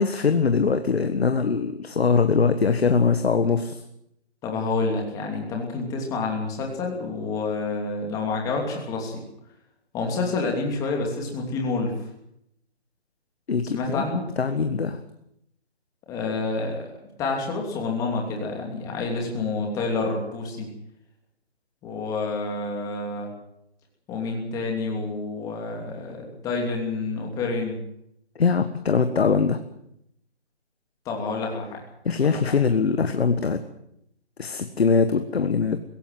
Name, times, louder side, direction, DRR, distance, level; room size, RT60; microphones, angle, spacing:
voice 1, 0.0-3.8 13.5-14.0 14.4-15.0 28.4-29.6 32.0-33.6 34.4-35.8, left 5 dB, 65° left, 8 dB, 1.6 m, -22 dB
voice 2, 4.4-9.2 9.9-11.9 13.7-14.2 16.1-16.8 17.2-20.7 21.8-23.3 24.1-27.8 31.0-31.8 32.2-32.6, left 3 dB, 10° left, 1 dB, 2.9 m, -28 dB
22.0 x 17.0 x 7.7 m, 0.77 s
hypercardioid pair, 160°, 33 cm